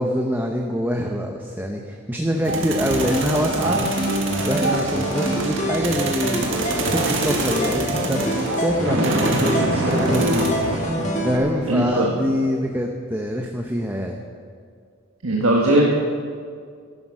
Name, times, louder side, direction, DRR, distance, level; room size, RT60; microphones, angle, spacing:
voice 1, 0.0-3.8 4.5-6.5 6.9-10.5 11.2-14.2, equal, 10° right, 2 dB, 0.8 m, -25 dB
sound 1, 2.4-11.8, right 2 dB, 60° right, 2.0 m, -25 dB
sound 2, 2.9-11.4, equal, 35° left, 1.7 m, -27 dB
voice 2, 11.7-12.2 15.2-15.8, right 1 dB, 75° right, -2 dB, 1.5 m, -18 dB
14.0 x 12.0 x 6.1 m, 2.1 s
head